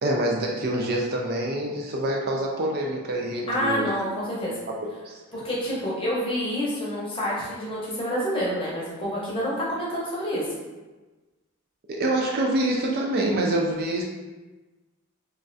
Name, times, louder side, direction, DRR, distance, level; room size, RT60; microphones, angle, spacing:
voice 1, 0.0-3.9 5.1-5.2 11.9-14.1, right 1 dB, 45° right, 0 dB, 0.3 m, -26 dB
voice 2, 3.5-4.6 5.3-10.5, equal, 25° left, -6 dB, 0.7 m, -28 dB
3.1 x 2.4 x 2.6 m, 1.2 s
head